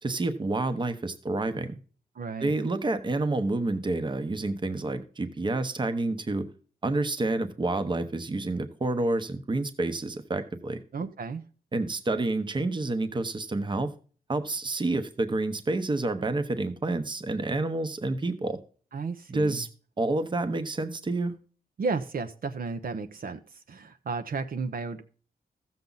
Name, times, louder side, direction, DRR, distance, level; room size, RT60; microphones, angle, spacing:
voice 1, 0.0-1.8 2.4-6.4 6.8-10.8 11.7-13.9 14.3-18.6 19.3-19.7 20.0-21.3, right 2 dB, 30° right, 1.0 m, -29 dB
voice 2, 2.1-2.5 10.9-11.4 18.9-19.6 21.8-25.0, right 4 dB, 60° right, 0.9 m, -33 dB
14.5 x 7.2 x 4.0 m
wide cardioid pair, 135°, 16 cm